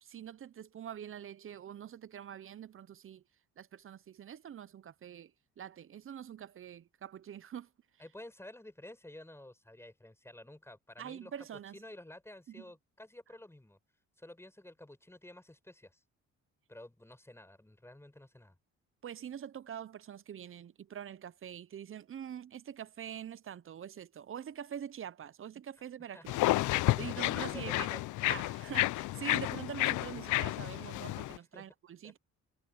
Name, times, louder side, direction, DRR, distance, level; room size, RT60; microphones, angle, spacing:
voice 1, 0.0-3.2 3.6-7.7 11.0-11.8 12.5-12.7 19.0-26.5 27.0-27.9 28.3-32.2, right 9 dB, 45° right, 0.7 m, -45 dB
voice 2, 8.0-11.3 11.7-13.8 14.2-16.0 16.7-18.5 26.1-26.3 27.0-28.0 31.5-31.7 32.0-32.2, left 1 dB, 10° left, 5.6 m, -51 dB
sound 1, 26.3-31.4, left 18 dB, 80° left, 0.5 m, -31 dB
cardioid pair, 90°, 30 cm